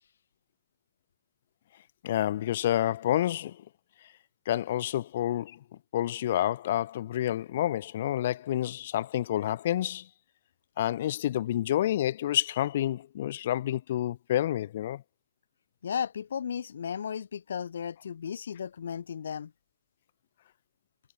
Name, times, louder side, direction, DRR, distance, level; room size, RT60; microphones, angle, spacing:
voice 1, 2.0-3.6 4.5-5.6 5.9-10.1 10.8-15.0, left 12 dB, 55° left, 1.1 m, -29 dB
voice 2, 15.8-19.5, left 7 dB, 75° left, 4.5 m, -35 dB
hypercardioid pair, 130°, 0 cm